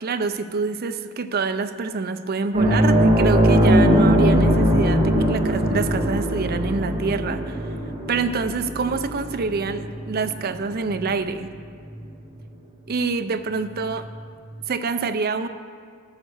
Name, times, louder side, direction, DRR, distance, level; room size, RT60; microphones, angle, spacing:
voice 1, 0.0-7.6 8.1-11.5 12.9-14.1 14.7-15.5, right 4 dB, 50° right, 10 dB, 0.5 m, -26 dB
sound 1, 2.5-11.5 11.8-12.0 14.1-14.2, equal, 30° right, 1.9 m, -20 dB
13.5 x 6.4 x 6.3 m, 2.1 s
head